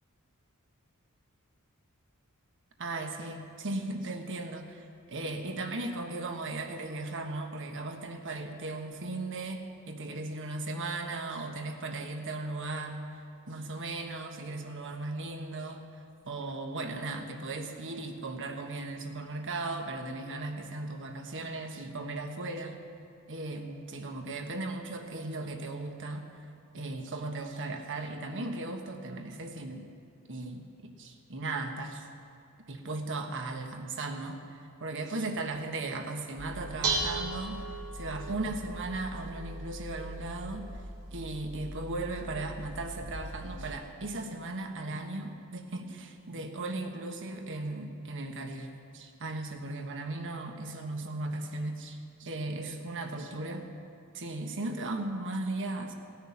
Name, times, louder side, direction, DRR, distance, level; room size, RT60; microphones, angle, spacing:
voice 1, 2.8-13.0 13.5-15.8 16.2-22.8 23.3-26.2 26.7-29.9 30.3-32.0 32.7-40.7 41.1-53.7 54.1-55.9, right 2 dB, 60° right, 4 dB, 1.3 m, -37 dB
Dishes pots and pans, 36.4-43.8, right 2 dB, 75° right, 2.1 m, -38 dB
17.0 x 6.5 x 9.5 m, 2.5 s
head